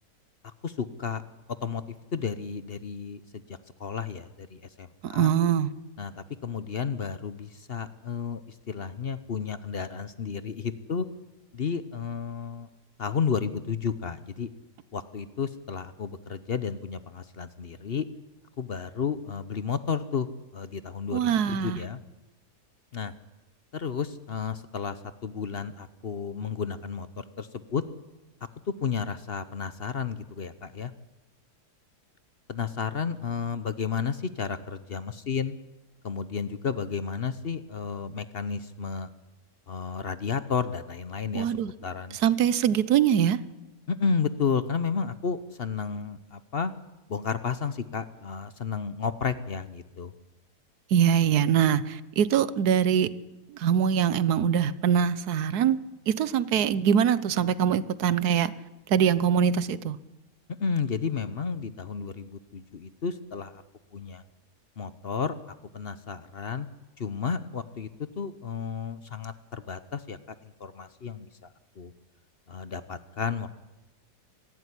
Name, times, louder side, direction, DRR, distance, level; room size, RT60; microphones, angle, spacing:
voice 1, 0.6-1.2 1.6-1.8 2.1-3.2 3.8-5.3 6.0-6.1 6.4-11.0 11.5-12.7 13.0-14.5 14.9-18.0 18.6-20.3 20.5-22.0 22.9-23.1 23.7-27.8 28.8-30.9 32.5-35.5 36.0-39.1 39.7-42.2 43.9-46.7 47.1-50.1 60.6-63.6 63.9-64.2 64.8-65.3 65.7-66.7 67.0-67.9 68.2-71.3 71.8-71.9 72.5-73.5, left 6 dB, 45° left, 0.8 m, -32 dB
voice 2, 5.0-5.7 21.1-21.8 41.3-41.7 42.2-43.4 50.9-53.1 53.6-55.8 56.1-58.5 58.9-60.0, right 8 dB, 70° right, 1.4 m, -23 dB
25.0 x 12.5 x 10.0 m
omnidirectional pair, 1.8 m